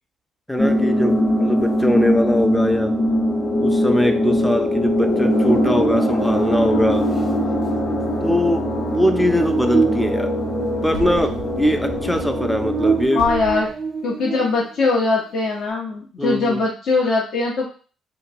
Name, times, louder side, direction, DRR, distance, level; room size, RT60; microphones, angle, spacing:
voice 1, 0.5-3.0 3.6-7.1 8.2-10.4 10.8-13.3 16.2-16.6, left 1 dB, 5° left, 7 dB, 0.4 m, -21 dB
sound 1, 0.6-13.1, equal, 35° left, 1.0 m, -21 dB
Buzz, 5.4-14.9, right 5 dB, 55° right, 0.5 m, -28 dB
sound 2, 10.7-12.9 13.2-13.9, equal, 80° right, 0.8 m, -35 dB
voice 2, 13.1-13.7 14.0-17.7, left 3 dB, 60° left, -3 dB, 0.7 m, -21 dB
3.0 x 2.3 x 2.6 m, 0.39 s
hypercardioid pair, 50°, 0 cm